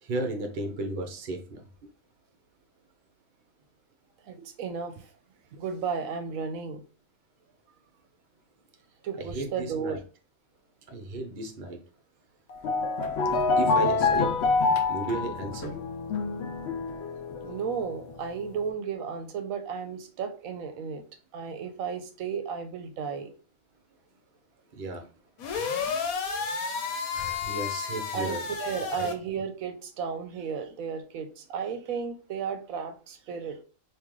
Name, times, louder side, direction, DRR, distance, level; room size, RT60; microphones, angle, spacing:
voice 1, 0.0-1.6 9.2-10.0 10.9-11.8 13.6-14.3 14.9-15.8 24.7-25.1 25.7-25.8 27.1-28.5 28.9-29.1, right 2 dB, 50° right, 4 dB, 0.7 m, -34 dB
voice 2, 4.2-5.1 5.5-6.8 9.0-10.0 14.1-14.2 17.4-21.0 21.3-23.3 28.1-33.6, right 6 dB, 75° right, 8 dB, 1.0 m, -34 dB
sound 1, 12.5-18.3, left 4 dB, 60° left, 0.7 m, -27 dB
sound 2, 25.4-29.1, left 5 dB, 80° left, 1.2 m, -32 dB
3.6 x 2.7 x 3.0 m, 0.36 s
omnidirectional pair, 1.5 m